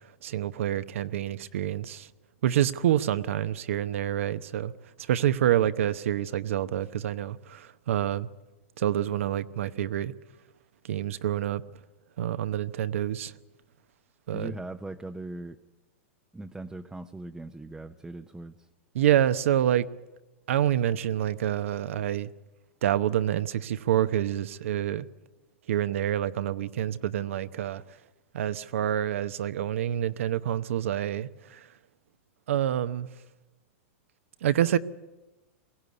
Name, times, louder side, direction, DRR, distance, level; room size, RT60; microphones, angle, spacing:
voice 1, 0.2-2.1 2.4-4.7 5.0-8.3 8.8-10.1 10.8-11.6 12.2-13.3 14.3-14.6 18.9-19.9 20.5-22.3 22.8-25.1 25.7-27.8 28.3-31.7 32.5-33.1 34.4-34.8, right 11 dB, 70° right, 0.9 m, -27 dB
voice 2, 14.3-15.6 16.3-18.7, right 2 dB, 5° right, 0.7 m, -39 dB
22.0 x 16.5 x 9.6 m
hypercardioid pair, 120°, 7 cm